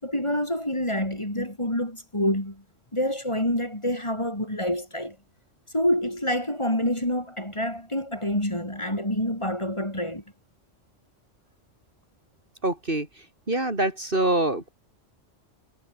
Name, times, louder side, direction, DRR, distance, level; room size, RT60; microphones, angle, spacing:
voice 1, 0.0-2.6 2.9-5.2 5.7-10.2, left 1 dB, 20° left, 5.4 m, -27 dB
voice 2, 12.6-13.1 13.5-14.7, right 1 dB, 45° right, 3.9 m, -24 dB
omnidirectional pair, 1.3 m